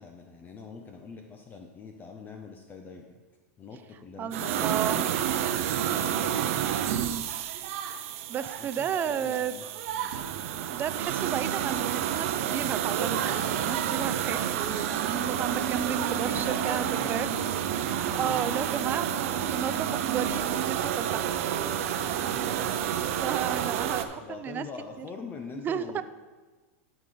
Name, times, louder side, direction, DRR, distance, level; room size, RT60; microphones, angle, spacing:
voice 1, 0.0-3.2 3.6-5.2 5.9-6.4 8.6-10.3 16.0-18.6 22.3-23.1 24.2-26.0, left 4 dB, 20° left, 3 dB, 0.6 m, -43 dB
voice 2, 4.2-5.0 6.9-7.2 8.3-9.5 10.7-17.3 17.8-21.7 23.0-24.6 25.0-25.1 25.6-26.0, right 9 dB, 25° right, 13 dB, 0.4 m, -33 dB
sound 1, 4.3-24.0, right 9 dB, 65° right, 0.7 m, -29 dB
12.0 x 5.0 x 3.9 m, 1.3 s
hypercardioid pair, 125°, 8 cm